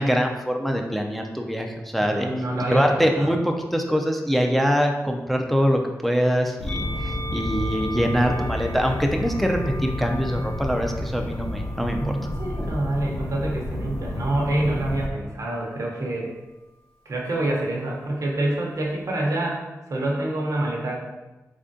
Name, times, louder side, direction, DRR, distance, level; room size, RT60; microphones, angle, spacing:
voice 1, 0.0-2.3 2.7-12.2, equal, ahead, 2 dB, 0.3 m, -23 dB
voice 2, 2.0-3.3 11.8-16.3 17.1-20.9, right 1 dB, 65° right, -2 dB, 0.7 m, -27 dB
sound 1, 6.6-15.1, left 1 dB, 80° left, 0.6 m, -31 dB
Musical instrument, 6.7-13.1 13.9-14.9, equal, 30° left, 0.9 m, -39 dB
3.6 x 3.3 x 2.6 m, 1.1 s
wide cardioid pair, 110°, 6 cm